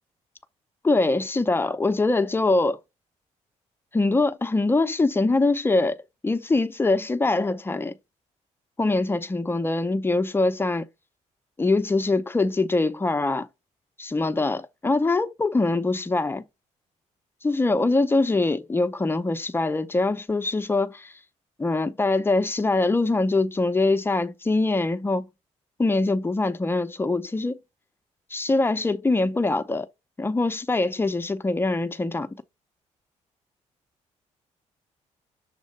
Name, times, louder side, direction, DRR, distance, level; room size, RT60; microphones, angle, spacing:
voice 1, 0.8-2.8 3.9-6.0 6.2-7.9 8.8-10.9 11.6-13.5 14.0-16.4 17.4-21.1 21.6-25.3 25.8-27.6 28.3-29.9 30.2-32.4, left 2 dB, 20° left, 0.7 m, -23 dB
7.3 x 2.5 x 5.1 m
cardioid pair, 105°, 13 cm